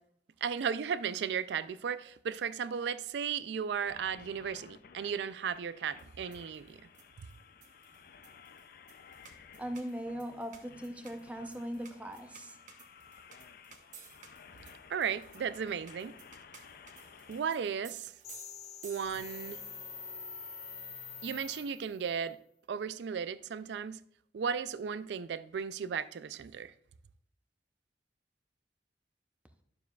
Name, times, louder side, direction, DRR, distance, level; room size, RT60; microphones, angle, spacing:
voice 1, 0.4-6.8 7.2-7.3 14.9-16.2 17.3-18.1 18.8-19.6 21.2-22.4 22.7-24.0 24.3-26.7, right 7 dB, 70° right, 0.3 m, -35 dB
sound 1, 3.8-17.4, left 6 dB, 55° left, 0.4 m, -56 dB
sound 2, 6.0-19.5, right 6 dB, 45° right, 0.9 m, -57 dB
voice 2, 9.6-12.6, equal, 10° right, 0.6 m, -39 dB
sound 3, 18.2-22.1, left 5 dB, 40° left, 1.6 m, -45 dB
11.5 x 6.9 x 2.3 m
head